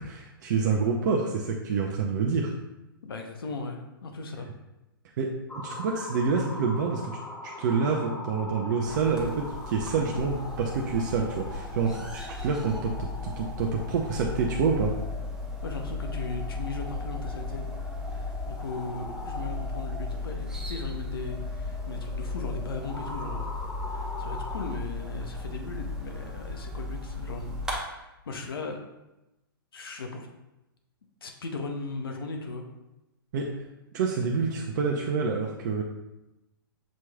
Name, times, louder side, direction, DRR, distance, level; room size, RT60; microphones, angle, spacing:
voice 1, 0.0-2.5 5.2-7.2 7.4-13.0 13.2-14.9 33.3-33.5 33.9-35.8, right 5 dB, 50° right, 0 dB, 0.6 m, -27 dB
voice 2, 3.0-4.5 15.6-17.6 18.0-23.6 23.9-28.8 29.7-30.3 31.2-32.7, left 3 dB, 75° left, 3 dB, 0.7 m, -37 dB
sound 1, 5.5-24.8, left 2 dB, 10° left, 0.5 m, -42 dB
sound 2, 8.9-27.8, left 3 dB, 5° right, 0.9 m, -36 dB
7.2 x 3.0 x 2.3 m, 0.96 s
hypercardioid pair, 115°, 12 cm